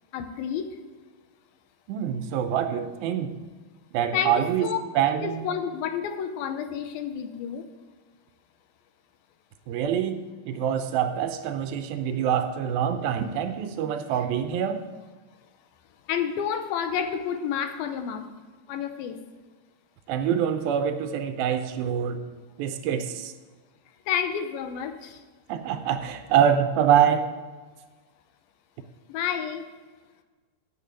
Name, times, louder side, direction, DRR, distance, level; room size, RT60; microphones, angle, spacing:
voice 1, 0.1-0.7 4.1-4.8 5.2-7.7 16.1-18.3 18.7-19.2 24.1-25.2 29.1-29.7, left 8 dB, 80° left, 8 dB, 2.5 m, -30 dB
voice 2, 1.9-3.3 3.9-4.7 5.0-5.4 9.7-14.8 20.1-22.2 22.6-23.3 25.5-27.3, right 9 dB, 85° right, 8 dB, 2.4 m, -25 dB
8.4 x 7.4 x 8.9 m, 1.3 s
omnidirectional pair, 4.4 m